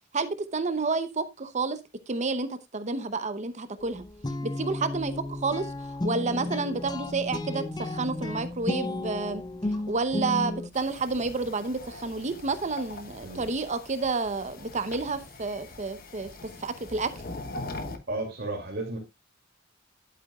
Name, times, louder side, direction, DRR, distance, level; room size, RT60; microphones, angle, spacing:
voice 1, 0.1-1.8 2.1-4.0 4.4-9.4 9.9-16.3 16.6-17.1, right 3 dB, 35° right, 0.8 m, -30 dB
sound 1, 3.8-10.7, left 2 dB, 20° left, 0.7 m, -33 dB
sound 2, 10.7-18.0, left 2 dB, 45° left, 1.0 m, -42 dB
voice 2, 18.1-19.0, right 2 dB, 55° right, 2.6 m, -33 dB
11.5 x 8.5 x 2.4 m
head